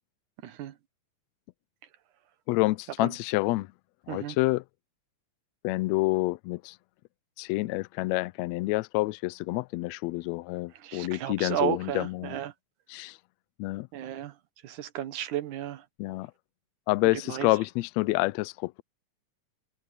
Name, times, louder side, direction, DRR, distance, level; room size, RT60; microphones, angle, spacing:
voice 1, 0.4-0.7 3.0-3.1 4.1-4.4 10.8-12.5 13.9-14.3 14.6-15.8 17.3-17.5, right 12 dB, 85° right, 2.8 m, -33 dB
voice 2, 2.5-3.7 4.1-4.6 5.6-6.8 7.4-12.4 12.9-13.2 13.6-13.9 16.0-16.3 16.9-18.8, left 21 dB, 80° left, 1.6 m, -28 dB
omnidirectional pair, 3.4 m